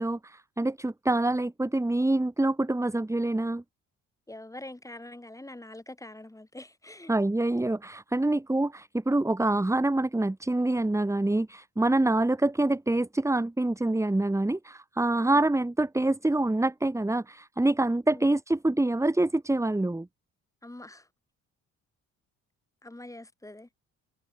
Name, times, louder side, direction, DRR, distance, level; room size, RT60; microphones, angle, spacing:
voice 1, 0.0-3.6 7.1-20.1, right 2 dB, 10° right, 2.2 m, -26 dB
voice 2, 4.3-7.1 15.2-15.4 18.1-18.3 20.6-21.1 22.8-23.7, left 1 dB, 10° left, 6.9 m, -44 dB
cardioid pair, 90°, 30 cm